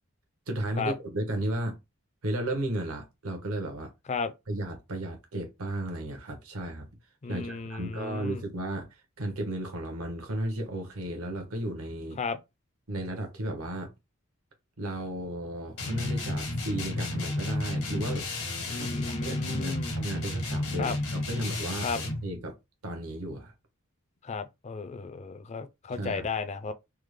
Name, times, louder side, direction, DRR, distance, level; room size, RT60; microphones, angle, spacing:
voice 1, 0.5-1.8 2.2-3.9 4.5-6.9 7.3-8.9 9.2-12.2 12.9-13.9 14.8-18.3 18.7-21.9 22.2-22.5 22.8-23.5 25.9-26.3, right 1 dB, 80° right, 1.0 m, -34 dB
voice 2, 7.2-8.4 12.2-12.4 18.7-19.9 20.8-21.0 21.8-22.0 24.2-26.7, left 4 dB, 30° left, 0.4 m, -34 dB
sound 1, 15.8-22.3, left 2 dB, 85° left, 1.3 m, -32 dB
3.5 x 2.1 x 3.2 m
head